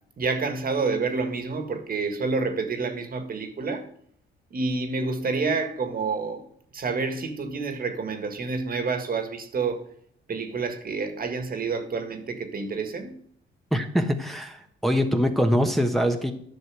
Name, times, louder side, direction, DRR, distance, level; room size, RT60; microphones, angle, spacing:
voice 1, 0.2-3.9 4.5-6.4 6.7-9.8 10.3-13.1, right 4 dB, 45° right, 1.7 m, -28 dB
voice 2, 13.7-16.3, equal, ahead, 1.1 m, -23 dB
10.5 x 6.3 x 6.1 m
cardioid pair, 90°, 20 cm